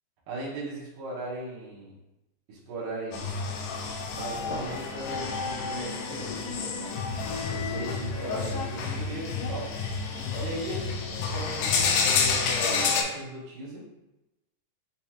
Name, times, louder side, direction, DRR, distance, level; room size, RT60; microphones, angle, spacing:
voice 1, 0.3-2.0 2.5-3.3 4.1-6.9 7.5-9.7 10.4-12.2 12.6-13.8, right 2 dB, 85° right, -6 dB, 2.7 m, -38 dB
sound 1, 3.1-13.0, left 5 dB, 90° left, 2.1 m, -29 dB
6.8 x 2.4 x 2.8 m, 0.98 s
omnidirectional pair, 3.6 m